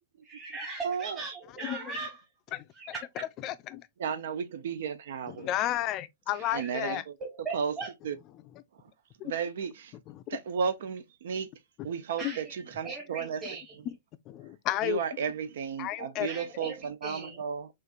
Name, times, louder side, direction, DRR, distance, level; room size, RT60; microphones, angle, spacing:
voice 1, 0.2-2.2 2.7-3.2 6.3-6.7 7.2-7.9 12.2-13.8 16.3-17.4, right 4 dB, 15° right, 1.2 m, -39 dB
voice 2, 0.8-1.2 4.0-5.5 6.5-7.2 7.5-7.7 8.0-8.2 9.2-9.9 10.3-11.5 11.8-13.4 14.8-17.7, right 6 dB, 70° right, 0.7 m, -33 dB
voice 3, 1.6-1.9 2.5-2.6 3.4-3.9 5.3-7.0 9.2-9.3 10.1-10.2 12.2-12.4 13.9-14.0 14.3-15.0 15.8-16.3, left 13 dB, 30° left, 0.4 m, -32 dB
6.6 x 2.5 x 2.4 m
hypercardioid pair, 150°, 0 cm